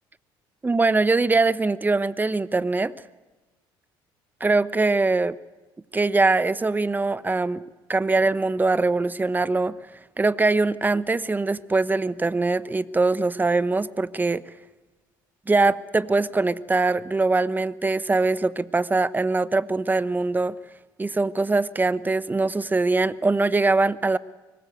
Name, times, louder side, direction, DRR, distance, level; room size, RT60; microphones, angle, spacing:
voice 1, 0.6-2.9 4.4-5.4 5.9-7.6 7.9-9.8 10.2-14.4 15.5-20.6 21.0-24.2, right 3 dB, 15° right, 16 dB, 0.9 m, -22 dB
24.0 x 19.5 x 8.2 m, 1.2 s
supercardioid pair, 75°, 10 cm